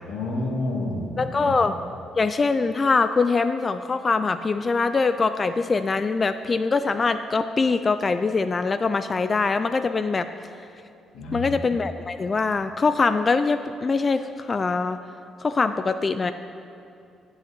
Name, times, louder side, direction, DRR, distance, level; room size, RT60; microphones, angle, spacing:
voice 1, 0.0-1.1 1.3-1.5 11.1-11.5, left 2 dB, 70° left, -3 dB, 3.0 m, -29 dB
voice 2, 1.2-1.8 2.2-10.5 11.3-15.0 15.4-16.3, left 4 dB, 20° left, 10 dB, 0.3 m, -23 dB
13.0 x 7.8 x 8.1 m, 2.5 s
cardioid pair, 180°, 0 cm